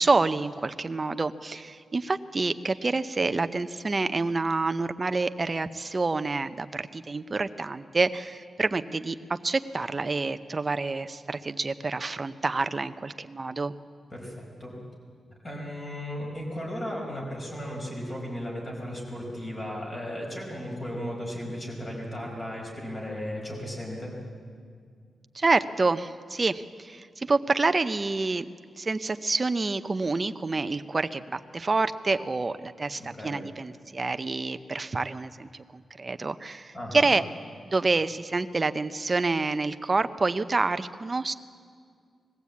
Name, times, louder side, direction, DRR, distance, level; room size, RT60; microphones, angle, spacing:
voice 1, 0.0-13.7 25.3-28.5 28.7-37.2 37.7-41.3, right 3 dB, 30° right, 11 dB, 0.6 m, -27 dB
voice 2, 14.1-14.8 15.4-24.1 33.0-33.4 36.7-37.1, equal, 30° left, -1 dB, 5.1 m, -35 dB
20.5 x 15.0 x 8.4 m, 2.1 s
wide cardioid pair, 140°, 0 cm